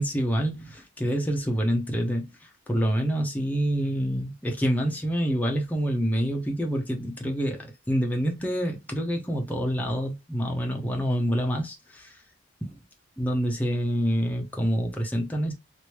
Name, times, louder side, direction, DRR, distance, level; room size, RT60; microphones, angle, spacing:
voice 1, 0.0-12.2 12.6-12.8 13.2-15.5, equal, 10° left, 0.7 m, -27 dB
3.1 x 2.6 x 3.0 m
head